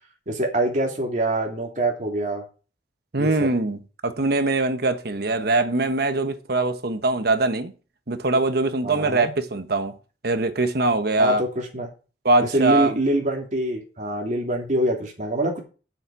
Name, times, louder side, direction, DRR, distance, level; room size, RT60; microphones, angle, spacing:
voice 1, 0.3-2.4 3.2-3.5 8.8-9.3 11.2-11.9 12.5-15.6, right 1 dB, 45° right, 2.9 m, -25 dB
voice 2, 3.1-7.7 8.1-10.0 10.2-11.4 12.2-13.0, right 2 dB, 60° right, 1.3 m, -22 dB
7.9 x 6.5 x 7.5 m
head